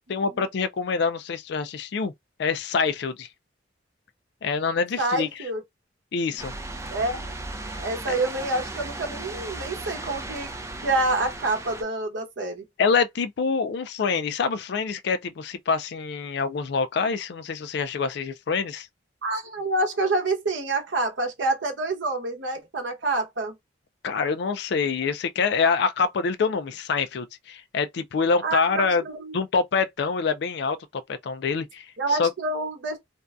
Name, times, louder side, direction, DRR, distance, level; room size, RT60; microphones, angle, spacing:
voice 1, 0.1-2.1 2.4-3.3 4.4-5.3 6.1-6.5 12.8-18.9 24.0-29.0 29.3-32.3, left 5 dB, 65° left, 0.4 m, -26 dB
voice 2, 5.0-5.6 6.9-7.3 7.8-10.5 10.8-12.6 19.2-23.5 28.4-29.4 32.0-33.0, right 2 dB, 80° right, 0.8 m, -27 dB
sound 1, 6.4-11.8, right 2 dB, 15° right, 0.4 m, -36 dB
2.6 x 2.2 x 2.3 m
head